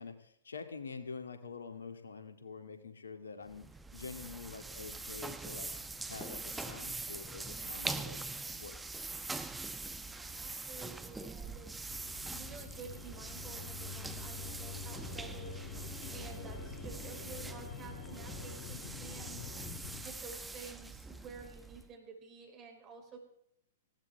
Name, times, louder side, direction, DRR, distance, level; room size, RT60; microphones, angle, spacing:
voice 1, 0.0-3.7 3.9-5.7 6.1-8.2 8.6-8.8, left 5 dB, 75° left, 7 dB, 2.0 m, -46 dB
sound 1, 3.5-21.9, right 3 dB, 10° right, 1.0 m, -43 dB
voice 2, 10.1-12.0 12.3-19.4 20.0-23.2, right 4 dB, 30° right, 3 dB, 5.1 m, -51 dB
sound 2, 11.9-20.0, left 5 dB, 30° left, 2.5 m, -46 dB
sound 3, 13.8-17.2 18.3-19.1 19.5-19.8, left 1 dB, 50° left, 5.6 m, -57 dB
19.5 x 16.5 x 3.5 m, 0.68 s
figure-of-eight pair, 110°, 0 cm